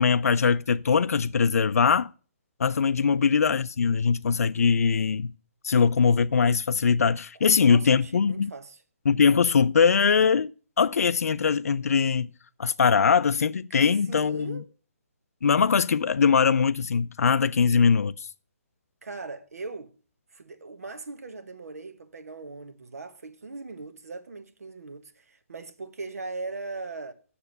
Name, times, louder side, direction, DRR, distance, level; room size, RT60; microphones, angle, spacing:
voice 1, 0.0-2.1 2.6-5.3 5.6-8.5 9.1-10.5 10.8-12.3 12.6-14.6 15.4-18.3, left 6 dB, 85° left, 0.4 m, -22 dB
voice 2, 7.6-8.8 13.7-13.8 14.1-14.6 19.0-19.9 20.3-27.1, right 3 dB, 90° right, 1.3 m, -39 dB
7.2 x 6.7 x 6.5 m
hypercardioid pair, 165°, 8 cm